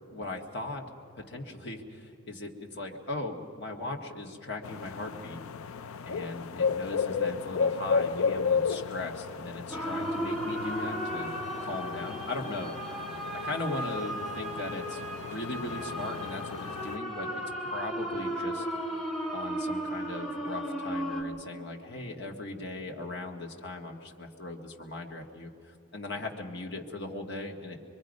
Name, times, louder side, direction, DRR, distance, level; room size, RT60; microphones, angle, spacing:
voice 1, 0.1-0.8 1.1-5.4 6.0-13.0 13.4-17.4 17.7-18.6 19.3-27.8, left 2 dB, 50° left, 0 dB, 1.8 m, -38 dB
sound 1, 4.6-17.0, left 5 dB, 75° left, 0.5 m, -33 dB
sound 2, 9.7-21.2, equal, ahead, 1.9 m, -35 dB
24.0 x 24.0 x 5.4 m, 2.9 s
head